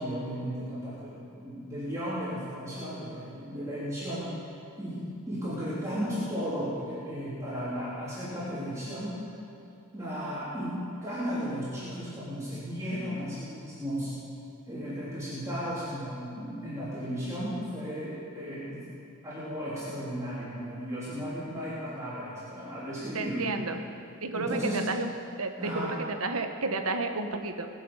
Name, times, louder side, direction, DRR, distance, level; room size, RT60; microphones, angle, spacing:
voice 1, 0.0-4.3 4.8-9.1 9.9-14.1 14.7-18.8 19.2-23.5 24.3-24.8 25.6-26.0, equal, 15° right, -11 dB, 3.3 m, -35 dB
voice 2, 23.1-23.8 24.2-25.1 25.4-27.7, right 3 dB, 75° right, 6 dB, 1.1 m, -31 dB
21.5 x 7.8 x 5.5 m, 2.8 s
head